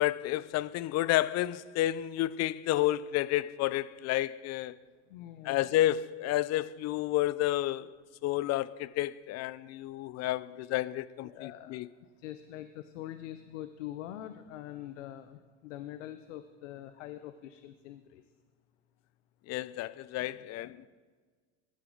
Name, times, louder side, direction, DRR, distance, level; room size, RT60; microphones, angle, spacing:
voice 1, 0.0-4.7 5.5-7.9 8.2-11.9 19.5-20.8, left 14 dB, 45° left, 0.5 m, -30 dB
voice 2, 5.1-5.8 11.2-11.8 12.2-18.2 20.2-20.9, left 12 dB, 90° left, 0.7 m, -44 dB
16.0 x 11.5 x 3.9 m
supercardioid pair, 95°, 36 cm